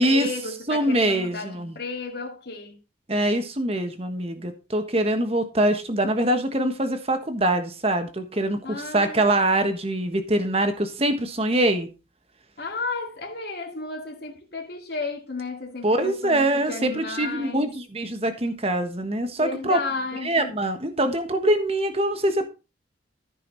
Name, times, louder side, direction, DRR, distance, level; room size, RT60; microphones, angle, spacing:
voice 1, 0.0-2.8 8.6-9.3 12.6-17.7 19.4-20.6, left 3 dB, 55° left, 2.2 m, -33 dB
voice 2, 0.7-1.8 3.1-11.9 15.8-19.8 20.2-22.5, right 1 dB, 30° right, 1.4 m, -24 dB
14.0 x 5.6 x 4.1 m
head